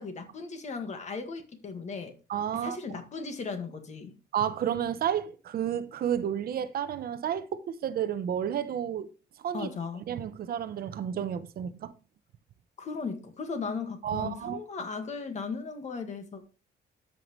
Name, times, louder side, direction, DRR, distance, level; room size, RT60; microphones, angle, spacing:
voice 1, 0.0-2.1 2.6-4.2 9.5-10.1 12.8-16.4, left 4 dB, 40° left, 1.8 m, -37 dB
voice 2, 2.3-3.0 4.3-9.1 9.4-9.7 10.1-11.9 14.0-14.6, right 9 dB, 60° right, 0.8 m, -31 dB
13.0 x 5.8 x 3.1 m
cardioid pair, 150°, 17 cm